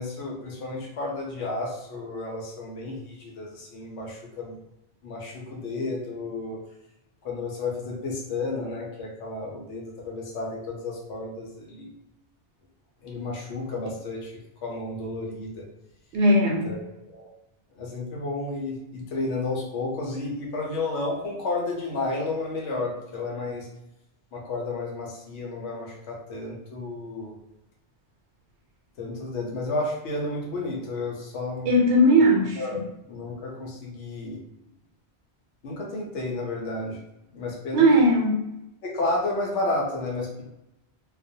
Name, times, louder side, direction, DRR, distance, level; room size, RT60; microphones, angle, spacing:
voice 1, 0.0-4.6 5.0-6.6 7.2-11.9 13.0-14.3 14.6-15.6 16.6-17.3 17.7-23.7 24.3-27.3 29.0-31.7 32.6-32.8 33.1-34.4 35.6-37.0 37.3-38.1 38.8-40.4, left 2 dB, 85° left, -2 dB, 0.9 m, -32 dB
voice 2, 16.1-16.7 31.7-32.6 37.7-38.3, right 1 dB, 80° right, 0 dB, 0.9 m, -18 dB
2.3 x 2.1 x 2.6 m, 0.90 s
omnidirectional pair, 1.1 m